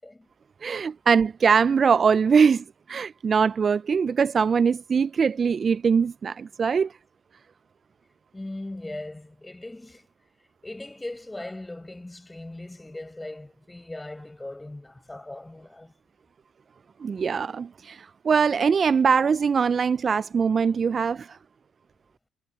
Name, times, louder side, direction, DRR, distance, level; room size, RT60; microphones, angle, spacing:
voice 1, 0.6-6.9 17.0-21.4, right 6 dB, 45° right, 0.3 m, -22 dB
voice 2, 8.3-10.1 10.6-15.9, left 2 dB, 15° left, 7.8 m, -39 dB
supercardioid pair, 70°, 0 cm